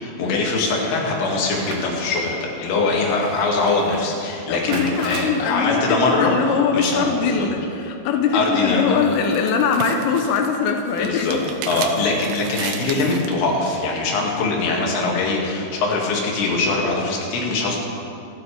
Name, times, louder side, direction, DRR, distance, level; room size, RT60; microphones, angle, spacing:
voice 1, 0.0-7.5 8.3-9.0 11.0-11.4 11.7-17.8, left 3 dB, 60° left, -2 dB, 3.9 m, -22 dB
sound 1, 1.3-8.1, right 3 dB, 65° right, 3.3 m, -38 dB
voice 2, 4.5-11.4 15.1-15.5, left 5 dB, 90° left, 4 dB, 3.5 m, -22 dB
sound 2, 8.6-13.4, right 7 dB, 85° right, 3.4 m, -34 dB
27.0 x 12.5 x 3.5 m, 2.6 s
omnidirectional pair, 5.7 m